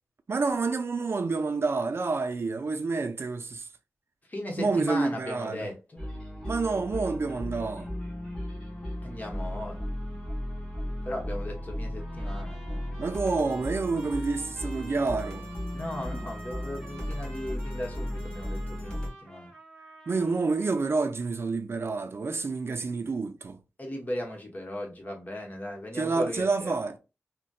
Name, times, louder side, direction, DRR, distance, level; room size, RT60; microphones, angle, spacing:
voice 1, 0.3-3.7 4.6-5.7 6.4-7.9 13.0-15.5 20.1-23.6 25.9-27.0, right 4 dB, 55° right, 0.4 m, -28 dB
voice 2, 4.3-6.0 9.0-9.8 11.0-13.0 15.7-19.5 23.8-26.7, left 1 dB, 35° left, 1.0 m, -37 dB
sound 1, 6.0-19.1, left 1 dB, 15° left, 1.4 m, -35 dB
Trumpet, 12.0-21.1, right 2 dB, 5° right, 1.3 m, -50 dB
4.0 x 2.1 x 2.3 m
wide cardioid pair, 110°, 5 cm